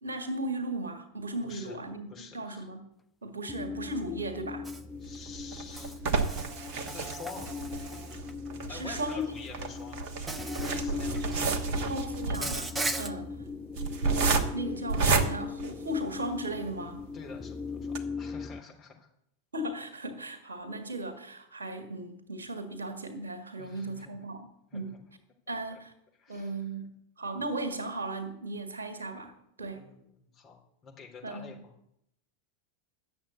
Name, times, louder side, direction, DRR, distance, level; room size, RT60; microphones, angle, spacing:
voice 1, 0.0-2.9 3.2-4.7 8.7-9.2 11.9-13.4 14.0-14.2 14.5-17.1 19.5-25.0 25.5-25.9 26.3-29.8 31.2-31.6, right 1 dB, 70° right, 8 dB, 1.8 m, -37 dB
voice 2, 1.4-1.8 2.1-2.7 5.0-6.0 6.9-7.5 8.7-11.9 17.1-19.1 23.6-24.1 24.7-25.0 25.7-25.8 26.1-26.5 29.7-31.7, left 5 dB, 30° left, 0 dB, 3.4 m, -48 dB
sound 1, 3.5-18.6, left 5 dB, 15° left, 0.4 m, -39 dB
Insect, 4.6-4.8 5.8-8.3 9.5-9.6 10.3-10.8 11.1-11.6 12.3-13.1, right 2 dB, 10° right, 0.9 m, -37 dB
sound 2, 5.0-16.4 17.0-17.1 17.4-17.5 17.8-18.0, right 4 dB, 45° right, 1.2 m, -31 dB
10.5 x 7.2 x 8.2 m, 0.75 s
figure-of-eight pair, 90°, 0 cm